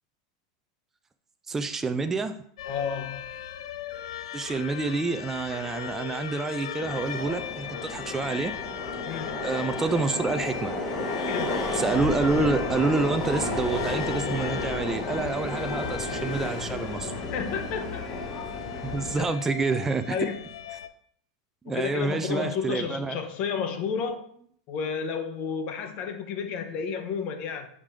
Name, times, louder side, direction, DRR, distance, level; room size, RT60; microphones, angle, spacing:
voice 1, 1.5-2.4 4.3-8.5 9.4-10.7 11.7-17.1 18.9-20.1 21.6-23.2, right 3 dB, 15° right, 8 dB, 0.4 m, -28 dB
sound 1, 2.6-20.9, left 10 dB, 80° left, 0.5 m, -38 dB
voice 2, 2.6-3.2 9.0-9.4 11.3-11.6 17.3-18.1 19.2-19.3 20.1-20.4 21.7-24.2 24.7-27.7, left 6 dB, 45° left, 6 dB, 1.1 m, -31 dB
Subway metro underground, 6.8-19.2, left 2 dB, 20° left, 1.6 m, -32 dB
6.9 x 5.0 x 3.7 m, 0.63 s
supercardioid pair, 135°, 3 cm